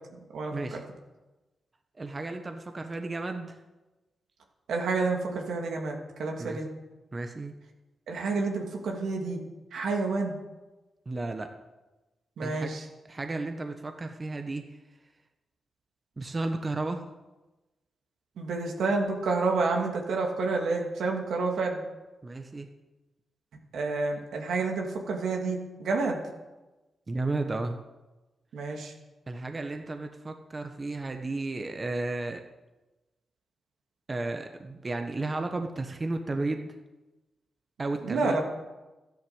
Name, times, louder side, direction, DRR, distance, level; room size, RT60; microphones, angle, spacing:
voice 1, 0.3-0.8 4.7-6.7 8.1-9.4 9.7-10.4 12.4-12.8 18.4-21.8 23.7-26.2 28.5-28.9 38.0-38.4, right 3 dB, 85° right, 1 dB, 2.8 m, -29 dB
voice 2, 2.0-3.6 6.4-6.6 7.1-7.5 11.0-11.5 12.4-12.8 13.1-14.6 16.2-17.0 22.2-22.7 27.1-27.8 29.3-32.4 34.1-36.7 37.8-38.4, right 2 dB, 35° right, 5 dB, 1.3 m, -33 dB
13.0 x 10.5 x 8.1 m, 1.1 s
cardioid pair, 65°, 0 cm